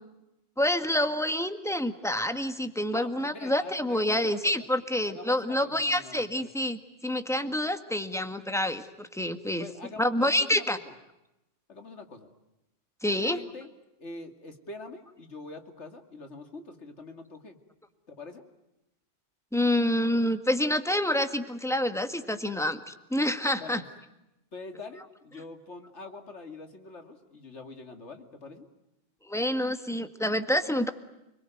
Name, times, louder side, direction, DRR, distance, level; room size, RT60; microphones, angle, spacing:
voice 1, 0.6-9.7 10.0-10.8 13.0-13.4 19.5-23.8 29.3-30.9, left 1 dB, ahead, 8 dB, 1.6 m, -27 dB
voice 2, 2.9-4.7 5.1-6.5 9.6-10.9 11.7-12.3 13.1-13.7 14.0-17.6 18.1-18.4 23.6-23.9 24.5-28.7, left 3 dB, 70° left, 6 dB, 2.8 m, -44 dB
29.0 x 22.0 x 9.2 m, 0.93 s
omnidirectional pair, 1.2 m